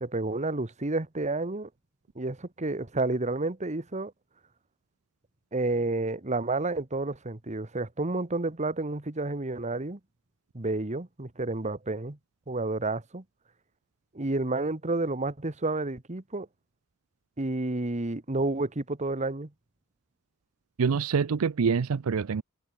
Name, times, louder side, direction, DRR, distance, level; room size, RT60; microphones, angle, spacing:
voice 1, 0.0-1.7 2.1-4.1 5.5-10.0 10.5-12.2 12.5-13.2 14.1-16.5 17.4-19.5, right 2 dB, 35° right, 1.4 m, -30 dB
voice 2, 20.8-22.4, right 5 dB, 75° right, 0.5 m, -25 dB
head